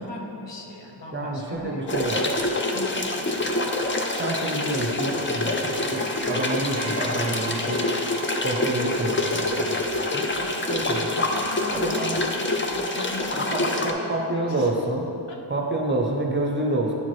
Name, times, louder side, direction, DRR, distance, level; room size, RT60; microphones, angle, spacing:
voice 1, 0.0-2.0 2.7-3.7 11.3-14.7 15.3-15.4, left 2 dB, 60° left, -1 dB, 1.0 m, -38 dB
voice 2, 1.1-2.3 4.2-7.8 8.4-9.8 10.1-11.3 11.7-12.2 13.3-15.1 15.5-16.9, right 2 dB, 25° right, 0 dB, 0.6 m, -28 dB
sound 1, 1.2-13.4, right 4 dB, 90° right, 0.7 m, -42 dB
sound 2, 1.9-13.9, left 2 dB, 25° left, 0.5 m, -26 dB
9.8 x 4.4 x 3.1 m, 2.9 s
wide cardioid pair, 105°, 47 cm